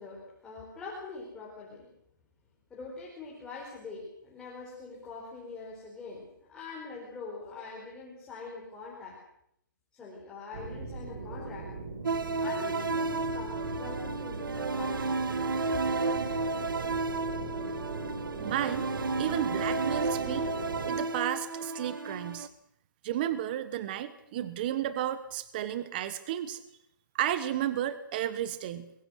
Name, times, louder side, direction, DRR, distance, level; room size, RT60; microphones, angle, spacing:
voice 1, 0.0-1.9 2.7-9.2 9.9-11.7 12.4-15.2, left 3 dB, 5° left, -4 dB, 4.5 m, -43 dB
sound 1, 10.5-21.0, right 3 dB, 50° right, 4.6 m, -39 dB
sound 2, 12.0-22.5, right 3 dB, 80° right, 1.7 m, -32 dB
voice 2, 18.4-18.9 19.2-20.5 20.8-22.5 23.0-26.6 27.1-28.9, right 11 dB, 25° right, 13 dB, 1.2 m, -33 dB
24.5 x 22.0 x 6.4 m, 0.73 s
hypercardioid pair, 165°, 11 cm